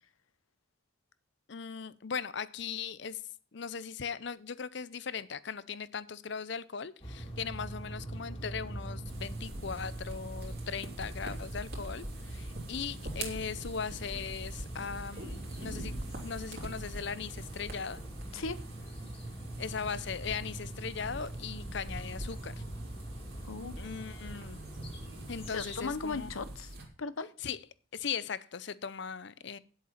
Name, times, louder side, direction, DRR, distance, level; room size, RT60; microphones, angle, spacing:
voice 1, 1.5-3.2 3.5-15.9 16.2-18.0 19.6-22.6 23.8-24.6 25.3-26.3 27.4-27.6 27.9-29.6, left 6 dB, 60° left, 18 dB, 0.6 m, -39 dB
sound 1, 7.0-25.8, right 1 dB, 30° left, 2.6 m, -43 dB
sound 2, 9.1-26.8, right 1 dB, 50° right, 3.1 m, -44 dB
voice 2, 23.4-23.8 25.5-27.3, left 4 dB, 90° left, 15 dB, 0.9 m, -37 dB
10.5 x 8.0 x 5.8 m, 0.41 s
head